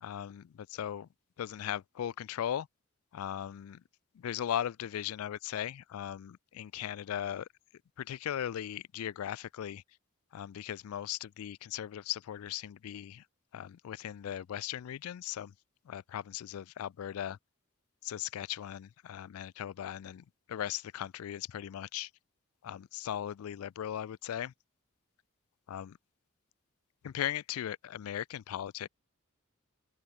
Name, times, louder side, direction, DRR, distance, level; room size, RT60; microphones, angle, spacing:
voice 1, 0.0-1.1 1.4-2.7 3.1-3.8 4.1-7.5 8.0-9.8 10.3-13.2 13.5-15.5 15.9-17.4 18.0-22.1 22.6-24.5 25.7-26.0 27.0-28.9, left 10 dB, 80° left, 0.3 m, -38 dB
open air
head